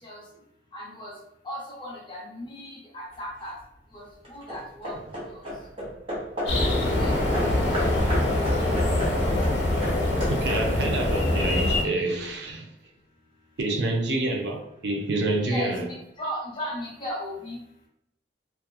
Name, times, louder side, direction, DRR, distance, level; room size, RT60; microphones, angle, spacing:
voice 1, 0.7-1.1 1.4-3.6 3.9-5.0 5.2-5.4 6.7-7.8 8.3-8.4 15.4-17.6, equal, 25° left, -4 dB, 0.6 m, -37 dB
Hammer / Wood, 3.1-3.6 4.2-6.7 7.3-11.0, equal, 30° right, 0.7 m, -34 dB
sound 1, 6.4-11.8, left 1 dB, 65° left, 0.6 m, -24 dB
voice 2, 10.3-12.7 13.6-15.9, right 2 dB, 65° right, 2 dB, 0.4 m, -27 dB
2.7 x 2.2 x 2.3 m, 0.80 s
head